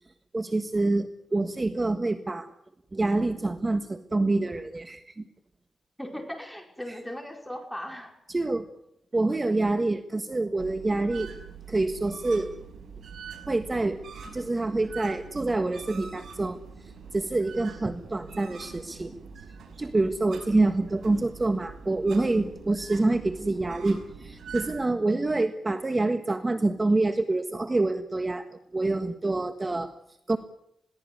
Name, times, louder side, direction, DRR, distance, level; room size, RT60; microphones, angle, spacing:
voice 1, 0.3-2.5 2.9-5.2 8.3-8.7 9.1-11.3 11.7-12.5 13.5-14.0 14.3-16.6 17.1-19.1 19.8-28.4 28.7-29.9 30.3-30.4, right 2 dB, 30° right, 9 dB, 1.5 m, -26 dB
voice 2, 6.0-8.2, left 1 dB, 5° left, 4 dB, 5.1 m, -38 dB
sound 1, 10.6-24.8, right 6 dB, 80° right, 5.6 m, -44 dB
22.0 x 17.0 x 9.5 m, 0.78 s
cardioid pair, 80°, 0 cm